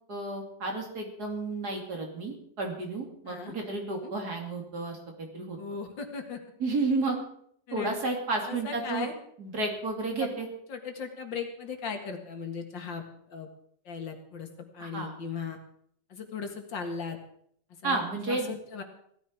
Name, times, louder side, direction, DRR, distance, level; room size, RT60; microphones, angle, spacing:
voice 1, 0.1-5.6 6.6-7.2 7.7-9.1 9.4-10.5 14.8-15.1 17.8-18.5, right 3 dB, 60° right, 1 dB, 3.4 m, -32 dB
voice 2, 5.6-6.4 7.7-7.9 8.5-9.1 10.2-10.3 10.7-13.0 13.3-13.5 13.8-14.5 14.7-15.6 16.1-17.2 17.8-18.0 18.3-18.8, left 5 dB, 80° left, 4 dB, 2.6 m, -37 dB
17.5 x 13.5 x 4.7 m, 0.68 s
omnidirectional pair, 2.0 m